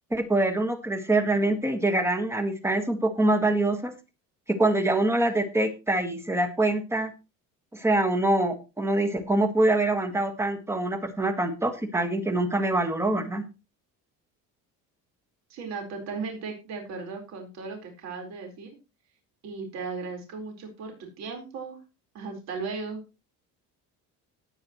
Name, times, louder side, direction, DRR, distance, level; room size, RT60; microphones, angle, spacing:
voice 1, 0.1-3.9 4.5-7.1 7.7-13.5, right 2 dB, 10° right, 6 dB, 1.6 m, -25 dB
voice 2, 15.5-18.8 19.4-21.8 22.1-23.0, right 4 dB, 55° right, 2 dB, 4.4 m, -36 dB
18.0 x 8.9 x 3.1 m, 0.29 s
cardioid pair, 170°, 33 cm